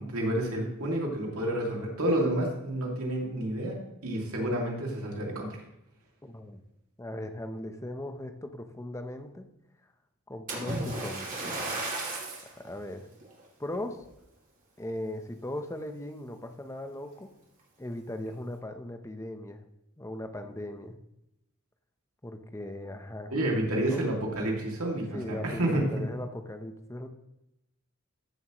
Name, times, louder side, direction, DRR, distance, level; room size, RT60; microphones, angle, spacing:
voice 1, 0.0-5.6 23.3-26.1, right 1 dB, 90° right, -1 dB, 2.4 m, -30 dB
voice 2, 6.2-6.6 7.0-9.5 10.3-11.5 12.6-13.1 13.6-14.0 14.8-17.4 17.8-19.6 20.0-21.0 22.2-24.1 25.0-27.1, left 1 dB, 15° left, 7 dB, 0.8 m, -38 dB
Splash splatter, 10.5-12.5 13.2-13.4 14.0-14.1, right 2 dB, 40° right, 2.9 m, -34 dB
14.0 x 7.3 x 3.1 m, 0.86 s
head